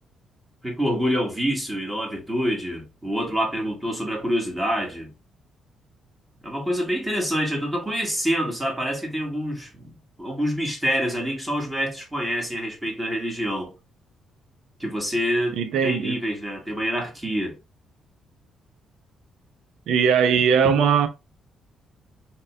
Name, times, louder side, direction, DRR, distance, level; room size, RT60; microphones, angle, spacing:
voice 1, 0.6-5.1 6.4-9.9 10.2-13.7 14.8-17.6, equal, 15° right, 1.8 m, -26 dB
voice 2, 15.6-16.2 19.9-21.1, right 7 dB, 80° right, 0.6 m, -20 dB
3.3 x 3.0 x 3.3 m
cardioid pair, 90°, 0 cm